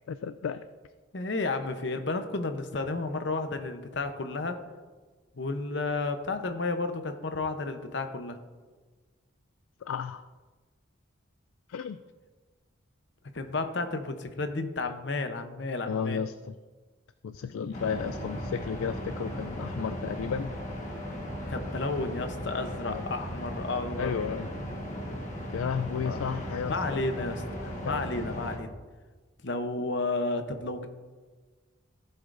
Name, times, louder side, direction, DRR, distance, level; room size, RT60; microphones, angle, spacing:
voice 1, 0.1-0.6 9.8-10.2 11.7-12.0 15.9-16.5 17.2-20.5 22.8-23.0 24.0-24.5 25.5-27.0 27.8-28.1, left 6 dB, 80° left, 11 dB, 0.3 m, -33 dB
voice 2, 1.1-4.6 5.4-8.4 13.3-16.2 17.6-17.9 21.5-24.2 26.0-26.3 26.7-28.7 29.4-30.9, left 3 dB, 60° left, 8 dB, 0.8 m, -32 dB
sound 1, 17.7-28.6, equal, 35° left, 1.4 m, -37 dB
15.0 x 7.9 x 2.6 m, 1.3 s
head